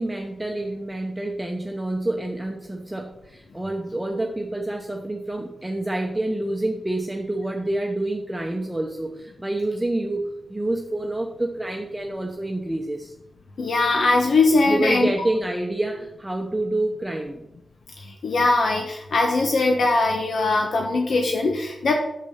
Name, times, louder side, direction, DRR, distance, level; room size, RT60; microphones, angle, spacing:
voice 1, 0.0-10.2 10.5-13.1 14.7-17.5, right 1 dB, 10° right, 1 dB, 0.9 m, -27 dB
voice 2, 13.6-15.1 18.0-21.9, left 3 dB, 85° left, 1 dB, 1.2 m, -21 dB
8.2 x 7.6 x 5.8 m, 0.91 s
wide cardioid pair, 95°, 0 cm